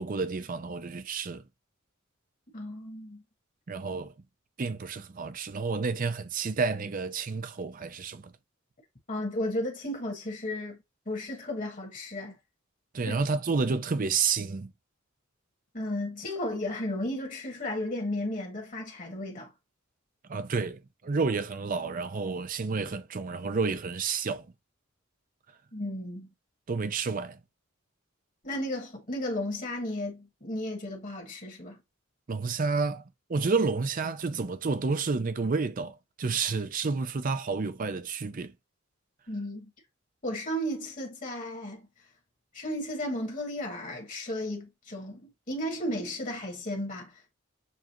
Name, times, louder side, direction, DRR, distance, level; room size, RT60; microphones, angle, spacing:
voice 1, 0.0-1.4 3.7-4.1 4.6-8.3 12.9-14.7 20.3-24.5 26.7-27.4 32.3-38.5, right 4 dB, 40° right, 0.5 m, -30 dB
voice 2, 2.5-3.2 9.1-10.8 11.0-12.3 13.1-13.2 15.7-19.5 25.7-26.3 28.4-31.8 39.3-39.7 40.2-41.8 42.5-47.3, left 1 dB, 40° left, 1.6 m, -34 dB
7.1 x 2.4 x 2.9 m
head